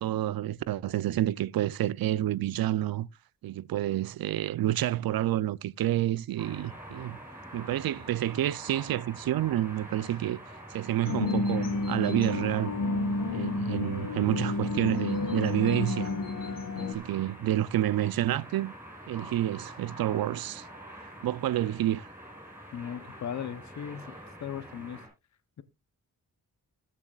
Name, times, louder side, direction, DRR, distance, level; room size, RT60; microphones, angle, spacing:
voice 1, 0.0-3.1 3.4-7.2 7.5-10.4 10.7-12.7 13.3-16.1 16.8-18.7 19.1-20.6 21.2-22.1, right 13 dB, 85° right, 0.5 m, -29 dB
sound 1, 6.4-25.1, right 1 dB, 5° right, 6.3 m, -46 dB
sound 2, 11.0-16.9, left 2 dB, 70° left, 1.5 m, -30 dB
voice 2, 22.7-25.0, left 8 dB, 55° left, 0.8 m, -38 dB
21.0 x 7.5 x 2.3 m
wide cardioid pair, 160°, 34 cm